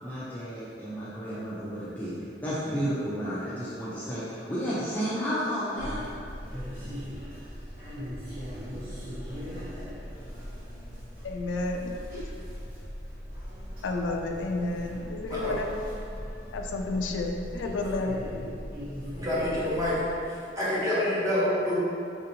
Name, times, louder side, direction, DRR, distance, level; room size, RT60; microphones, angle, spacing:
voice 1, 0.0-6.1, equal, 10° left, -10 dB, 0.4 m, -32 dB
sound 1, 5.8-20.1, equal, 50° right, 1.0 m, -39 dB
voice 2, 11.2-12.2 13.8-15.6 16.5-18.3, left 2 dB, 80° left, 2 dB, 0.3 m, -31 dB
voice 3, 19.1-19.9 20.3-21.8, left 1 dB, 20° right, -9 dB, 0.9 m, -27 dB
4.3 x 2.7 x 2.7 m, 2.5 s
head